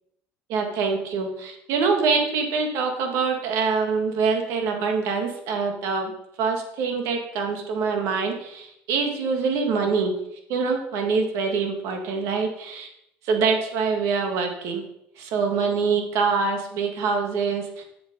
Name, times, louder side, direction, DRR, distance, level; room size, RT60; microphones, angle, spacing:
voice 1, 0.5-6.1 6.4-10.1 10.5-12.9 13.2-14.8 15.2-17.7, right 5 dB, 70° right, 3 dB, 1.9 m, -25 dB
7.2 x 7.1 x 5.1 m, 0.79 s
cardioid pair, 115°, 5 cm